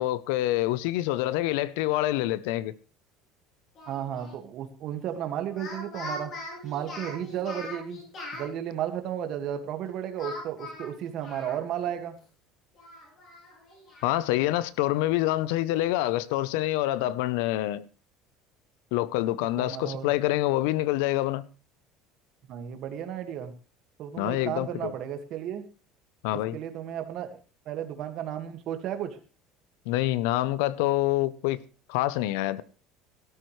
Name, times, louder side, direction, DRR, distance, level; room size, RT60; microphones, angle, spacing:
voice 1, 0.0-2.7 14.0-17.9 18.9-21.4 24.2-24.9 26.2-26.6 29.9-31.6 31.9-32.6, left 15 dB, 85° left, 0.7 m, -26 dB
Speech, 3.8-4.4 5.4-8.5 10.2-11.9 12.2-12.3 12.8-14.2, left 2 dB, 35° left, 6.9 m, -41 dB
voice 2, 3.9-6.3 6.6-8.0 8.3-12.2 19.6-20.1 22.5-23.5 24.0-25.6 26.5-27.4 27.7-29.2, right 10 dB, 45° right, 1.9 m, -33 dB
17.5 x 12.5 x 3.3 m
cardioid pair, 165°, 0 cm